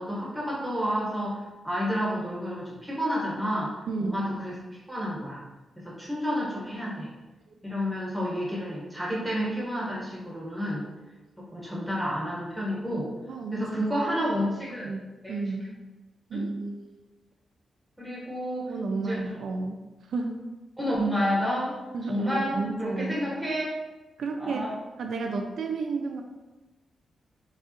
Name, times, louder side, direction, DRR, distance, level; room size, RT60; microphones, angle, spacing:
voice 1, 0.0-3.7 4.0-5.4 5.8-7.1 7.6-10.9 11.4-13.1 13.5-14.9 15.2-15.4 16.3-16.4 18.0-19.2 20.8-21.8 22.1-23.8 24.4-24.7, equal, 5° right, -6 dB, 1.1 m, -30 dB
voice 2, 3.9-4.2 7.5-7.6 13.3-14.3 14.8-15.0 15.3-15.7 16.3-16.9 18.7-19.8 20.1-20.5 21.9-23.2 24.2-24.7 25.0-26.2, right 3 dB, 75° right, 3 dB, 0.3 m, -32 dB
4.7 x 2.3 x 2.9 m, 1.1 s
wide cardioid pair, 120°, 0 cm